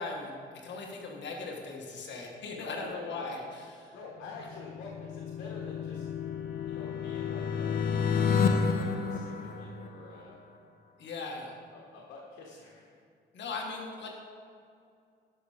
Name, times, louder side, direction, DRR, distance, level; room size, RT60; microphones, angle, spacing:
voice 1, 0.0-4.0 11.0-11.5 13.3-14.1, left 3 dB, 65° left, 1 dB, 1.5 m, -39 dB
voice 2, 2.6-3.3 3.9-6.1 6.7-7.8 8.1-10.4 11.0-12.9, left 3 dB, 85° left, -3 dB, 1.5 m, -47 dB
sound 1, 4.3-10.2, left 6 dB, 50° left, 1.0 m, -30 dB
13.0 x 5.7 x 5.0 m, 2.4 s
cardioid pair, 90°, 20 cm